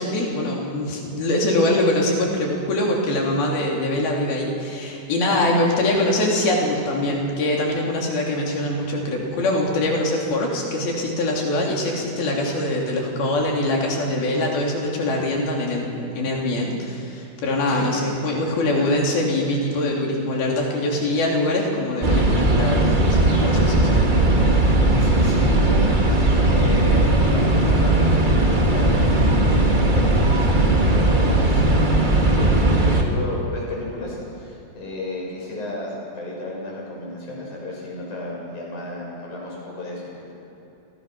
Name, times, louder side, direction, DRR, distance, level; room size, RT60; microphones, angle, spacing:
voice 1, 0.0-22.9 23.4-24.0, left 1 dB, 90° left, -1 dB, 5.2 m, -23 dB
sound 1, 22.0-33.0, right 1 dB, 30° right, 0.9 m, -18 dB
voice 2, 23.7-31.9 32.2-40.3, left 2 dB, 55° left, -3 dB, 7.9 m, -34 dB
29.5 x 20.5 x 6.3 m, 3.0 s
omnidirectional pair, 4.2 m